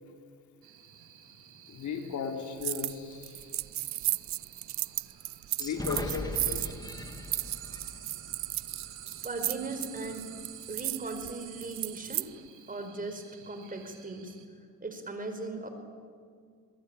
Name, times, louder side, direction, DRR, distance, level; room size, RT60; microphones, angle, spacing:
sound 1, 0.6-14.5, right 10 dB, 85° right, 3.0 m, -50 dB
voice 1, 1.7-3.5 5.6-7.0, left 6 dB, 70° left, 4 dB, 3.7 m, -36 dB
sound 2, 2.6-3.0 3.2-12.3, right 15 dB, 65° right, 0.5 m, -34 dB
sound 3, 5.6-9.3, left 1 dB, 15° left, 2.6 m, -40 dB
voice 2, 9.2-10.3 10.7-12.3 12.7-14.3 14.8-15.7, right 3 dB, 30° right, 7 dB, 4.9 m, -38 dB
24.0 x 21.0 x 9.0 m, 2.2 s
cardioid pair, 90°, 30 cm